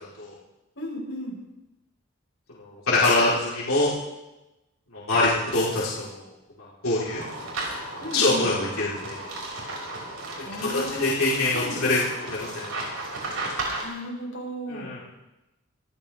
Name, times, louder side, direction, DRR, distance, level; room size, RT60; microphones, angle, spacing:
voice 1, 0.8-1.4 8.0-8.5 10.4-11.8 13.8-14.9, equal, 60° left, -4 dB, 7.0 m, -35 dB
voice 2, 2.6-3.9 5.1-6.2 6.8-7.2 8.1-9.2 10.7-12.0 12.2-12.7 14.7-15.0, left 2 dB, 90° left, -8 dB, 3.8 m, -24 dB
sound 1, 7.1-13.8, right 2 dB, 85° right, 6.0 m, -34 dB
26.0 x 15.0 x 3.5 m, 1.0 s
head